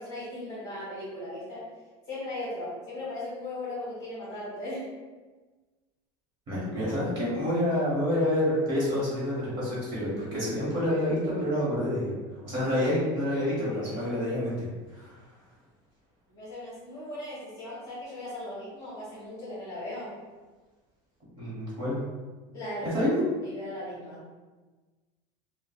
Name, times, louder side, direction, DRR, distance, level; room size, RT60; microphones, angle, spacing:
voice 1, 0.0-1.7 2.1-4.9 12.8-12.9 13.3-14.2 16.3-20.2 22.5-22.9 23.4-24.2, left 1 dB, 25° left, -8 dB, 1.0 m, -38 dB
voice 2, 6.5-12.1 12.4-14.7 14.9-15.2 21.4-22.0 22.8-23.2, left 1 dB, 35° right, -8 dB, 1.2 m, -28 dB
3.4 x 2.1 x 2.3 m, 1.3 s
cardioid pair, 165°, 13 cm